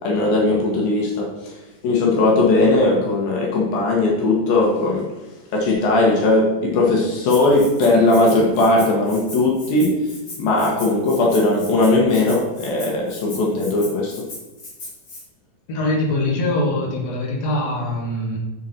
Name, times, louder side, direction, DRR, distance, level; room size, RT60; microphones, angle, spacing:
voice 1, 0.0-1.5 1.8-5.1 5.5-10.0 10.4-14.2, left 2 dB, 75° left, -1 dB, 3.1 m, -18 dB
Rattle (instrument), 7.3-15.2, left 2 dB, 35° left, 3.0 m, -38 dB
voice 2, 15.7-18.4, left 1 dB, 50° left, -2 dB, 2.8 m, -23 dB
7.5 x 7.2 x 4.4 m, 1.1 s
omnidirectional pair, 4.2 m